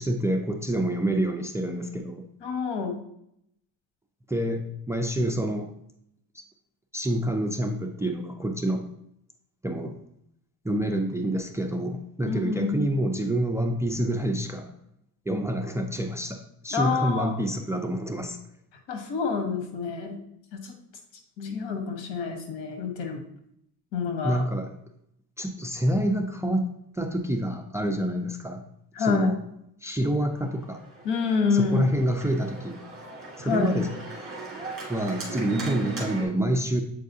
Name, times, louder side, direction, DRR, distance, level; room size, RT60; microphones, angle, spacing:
voice 1, 0.0-2.3 4.3-5.7 6.3-6.4 6.9-8.9 9.6-10.0 10.6-14.7 15.3-18.4 24.2-24.7 25.4-28.6 29.0-29.4 29.8-30.8 31.5-32.8 33.4-33.9 34.9-36.8, right 1 dB, 5° right, 5 dB, 0.4 m, -27 dB
voice 2, 2.4-3.0 12.2-12.8 16.7-17.4 18.9-20.2 20.5-20.7 21.4-23.2 23.9-24.4 29.0-29.3 31.0-31.9 33.4-33.7, left 5 dB, 80° left, 4 dB, 1.3 m, -27 dB
Organ, 30.4-36.2, right 4 dB, 30° right, 2.0 m, -38 dB
7.5 x 4.6 x 2.7 m, 0.76 s
cardioid pair, 110°, 41 cm